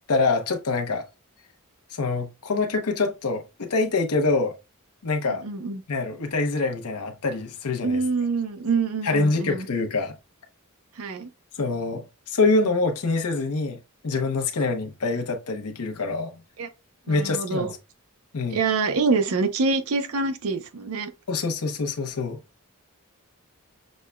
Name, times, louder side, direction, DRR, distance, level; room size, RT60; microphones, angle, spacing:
voice 1, 0.1-1.0 1.9-4.5 5.0-5.4 5.9-8.0 9.0-10.1 11.6-13.8 14.0-16.4 17.1-17.8 18.3-18.6 21.3-22.4, left 3 dB, 85° left, 0.8 m, -25 dB
voice 2, 5.3-5.8 7.8-9.7 11.0-11.3 16.6-16.7 17.1-17.7 18.5-21.1, right 4 dB, 70° right, 0.6 m, -25 dB
6.3 x 2.2 x 2.2 m
head